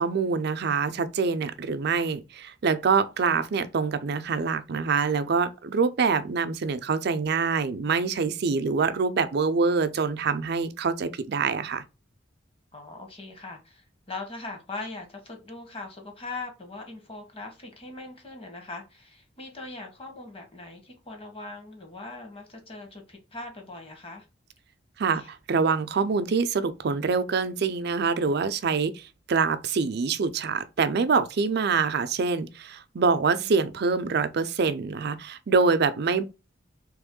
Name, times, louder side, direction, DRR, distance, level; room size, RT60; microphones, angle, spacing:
voice 1, 0.0-11.8 25.0-36.2, right 5 dB, 60° right, 0.4 m, -25 dB
voice 2, 12.7-24.3 25.1-25.3 33.3-33.6, left 2 dB, 30° left, 1.1 m, -41 dB
3.5 x 3.0 x 3.6 m
head